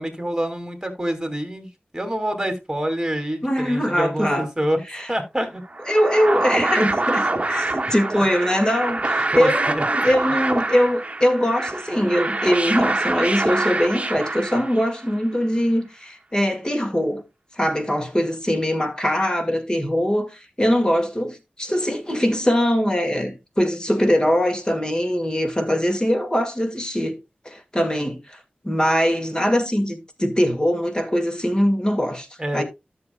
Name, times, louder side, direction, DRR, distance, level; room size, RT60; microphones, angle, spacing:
voice 1, 0.0-4.8 5.1-5.6 8.1-8.2 9.3-9.8 32.4-32.6, equal, 15° right, 2.7 m, -26 dB
voice 2, 3.4-4.5 4.9-5.1 5.9-17.2 17.6-27.2 27.5-32.3 32.5-32.6, equal, 25° left, 2.1 m, -22 dB
sound 1, 5.7-15.1, right 2 dB, 35° right, 1.1 m, -25 dB
13.5 x 6.9 x 2.3 m
wide cardioid pair, 55°, 3 cm